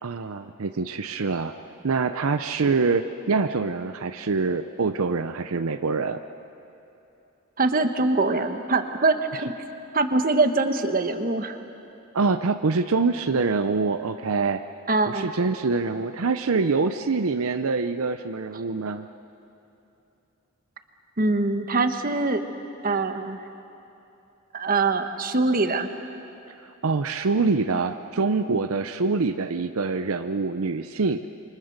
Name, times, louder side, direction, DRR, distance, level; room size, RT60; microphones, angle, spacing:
voice 1, 0.0-1.5 1.8-6.2 12.1-14.6 15.1-19.1 26.8-31.3, right 4 dB, 75° right, 9 dB, 0.7 m, -25 dB
voice 2, 7.6-9.5 9.9-11.6 14.9-15.3 21.2-22.4 22.8-23.4 24.5-25.9, right 3 dB, 40° right, 7 dB, 1.2 m, -23 dB
28.0 x 24.5 x 6.6 m, 2.8 s
head